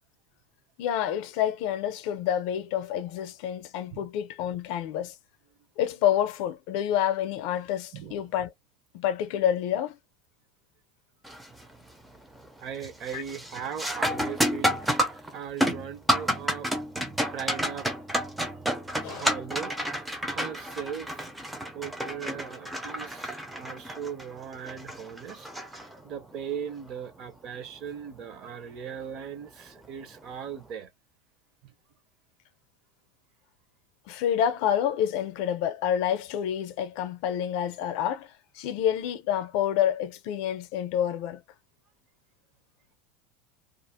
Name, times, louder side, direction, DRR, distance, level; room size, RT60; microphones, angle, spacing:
voice 1, 0.8-5.1 5.8-8.5 8.9-10.0 13.1-13.2 19.0-19.3 34.1-38.3 38.6-41.4, left 10 dB, 55° left, 0.5 m, -28 dB
voice 2, 7.9-8.3 12.6-16.7 17.3-17.9 18.4-18.6 19.1-21.3 21.7-30.9, right 8 dB, 40° right, 0.7 m, -39 dB
sound 1, 11.2-11.6 12.0-12.5 12.8-26.3 28.8-28.9 29.8-30.0, equal, 5° right, 0.5 m, -30 dB
2.4 x 2.0 x 2.8 m
supercardioid pair, 150°, 0 cm